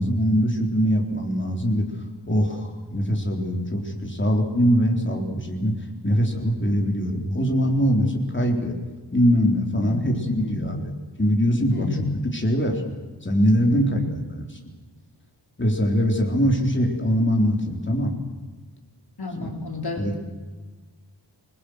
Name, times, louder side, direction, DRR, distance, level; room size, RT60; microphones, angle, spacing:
voice 1, 0.0-1.9 2.3-5.8 6.0-8.8 9.1-10.9 11.2-11.9 12.3-12.8 13.2-14.6 15.6-18.1 20.0-20.1, equal, 25° left, 2 dB, 4.0 m, -22 dB
voice 2, 9.8-10.9 11.7-12.3 13.6-14.2 19.2-20.2, left 2 dB, 55° left, 3 dB, 3.5 m, -32 dB
28.5 x 21.5 x 6.4 m, 1.3 s
wide cardioid pair, 95°, 44 cm